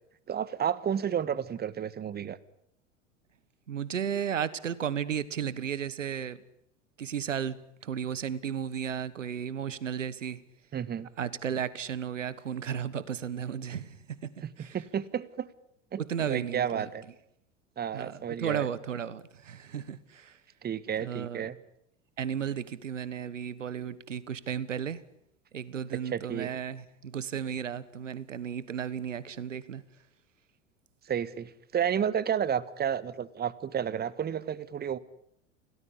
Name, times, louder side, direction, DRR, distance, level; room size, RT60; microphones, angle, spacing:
voice 1, 0.3-2.4 10.7-11.1 14.4-15.5 15.9-17.0 17.8-18.7 20.6-21.6 25.9-26.5 31.0-35.0, right 8 dB, 25° right, 1.5 m, -31 dB
voice 2, 3.7-6.4 7.0-7.6 7.8-10.4 11.2-14.3 14.6-14.8 16.0-16.9 17.9-20.4 21.0-21.4 22.2-25.0 25.5-29.8, right 8 dB, 80° right, 1.5 m, -34 dB
28.0 x 18.5 x 10.0 m
figure-of-eight pair, 85°, 37 cm